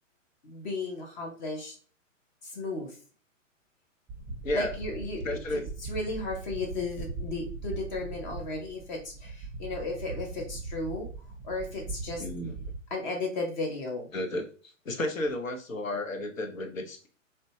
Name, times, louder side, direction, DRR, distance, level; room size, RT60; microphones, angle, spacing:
voice 1, 0.4-1.7 2.4-3.0 4.5-11.1 11.4-12.2 12.9-14.1, left 2 dB, 35° left, 1 dB, 0.7 m, -35 dB
sound 1, 4.1-12.8, right 3 dB, 10° right, 0.8 m, -40 dB
voice 2, 5.2-5.6 12.2-12.5 14.1-14.4 14.9-17.1, left 1 dB, 90° left, 5 dB, 0.7 m, -32 dB
2.6 x 2.2 x 2.7 m, 0.40 s
figure-of-eight pair, 120°, 39 cm